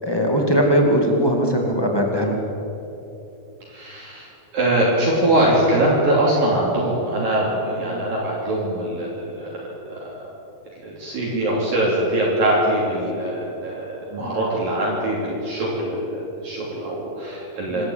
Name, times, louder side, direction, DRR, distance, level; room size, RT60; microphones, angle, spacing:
voice 1, 0.0-2.4 7.8-8.0 11.3-11.5 14.2-14.4 17.7-17.9, equal, 15° left, 0 dB, 0.7 m, -20 dB
voice 2, 3.7-10.3 10.8-17.9, right 1 dB, 55° right, -4 dB, 4.7 m, -22 dB
26.0 x 13.5 x 8.8 m, 2.9 s
omnidirectional pair, 5.0 m